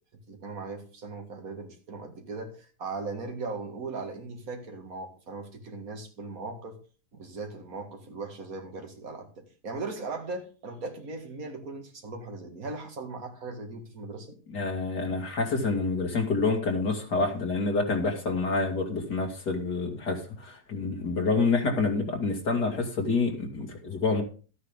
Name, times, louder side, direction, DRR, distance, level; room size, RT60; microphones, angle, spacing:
voice 1, 0.1-6.8 7.1-14.4, right 3 dB, 60° right, 4 dB, 2.4 m, -38 dB
voice 2, 14.5-24.2, left 3 dB, 85° left, 2 dB, 3.1 m, -27 dB
13.0 x 9.4 x 3.6 m, 0.37 s
omnidirectional pair, 1.7 m